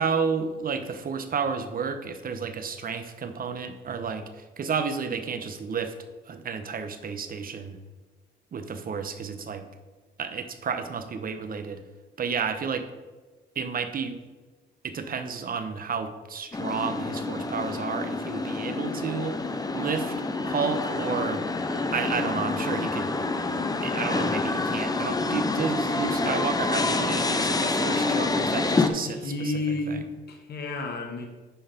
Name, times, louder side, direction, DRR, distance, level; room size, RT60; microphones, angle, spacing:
voice 1, 0.0-5.9 6.3-7.8 8.5-9.7 10.2-11.8 12.2-12.9 13.6-14.2 14.8-19.4 19.7-20.1 20.4-21.4 21.9-23.1 23.4-29.5 29.9-30.0, right 5 dB, 45° right, 9 dB, 1.0 m, -31 dB
sound 1, 16.5-28.9, left 3 dB, 20° left, 0.7 m, -27 dB
voice 2, 29.0-31.3, left 2 dB, 55° left, 2 dB, 1.5 m, -31 dB
10.0 x 4.0 x 5.1 m, 1.3 s
cardioid pair, 90°, 20 cm